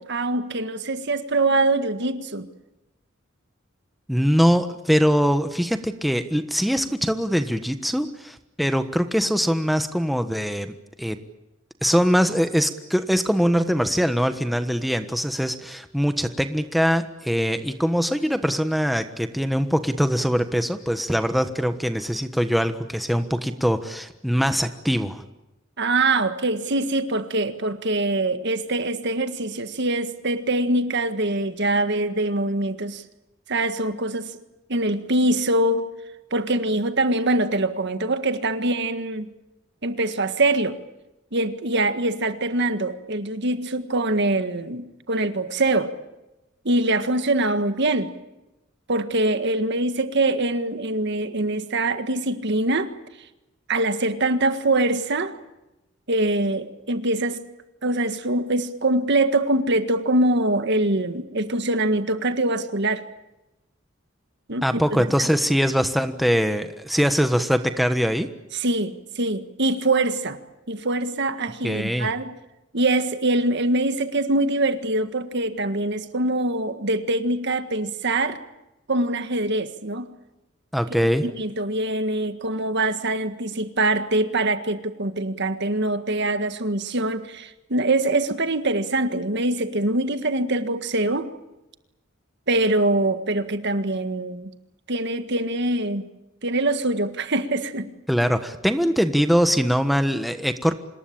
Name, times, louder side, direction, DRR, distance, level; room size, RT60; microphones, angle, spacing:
voice 1, 0.0-2.5 25.8-33.0 33.5-34.3 34.7-35.9 36.3-39.3 39.8-40.8 41.3-46.0 46.7-48.1 48.9-52.9 53.7-55.3 56.1-57.4 57.8-63.0 64.5-64.8 65.2-65.3 68.5-70.4 70.7-72.3 72.7-78.4 78.9-80.1 81.2-91.3 92.5-94.5 94.9-96.0 96.4-97.9, right 2 dB, 60° right, 9 dB, 1.8 m, -23 dB
voice 2, 4.1-11.2 11.8-25.2 64.6-68.3 71.6-72.1 80.7-81.2 98.1-100.7, equal, ahead, 8 dB, 1.2 m, -22 dB
26.0 x 20.5 x 8.8 m, 0.94 s
head